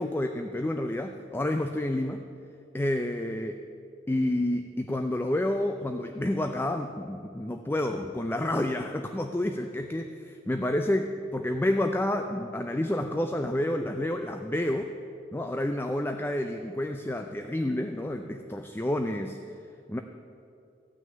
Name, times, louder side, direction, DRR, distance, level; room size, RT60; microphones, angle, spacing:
voice 1, 0.0-2.2 2.7-3.6 4.1-14.9 15.3-19.4 19.9-20.0, left 1 dB, 15° left, 6 dB, 0.4 m, -29 dB
14.0 x 6.3 x 9.1 m, 2.5 s
head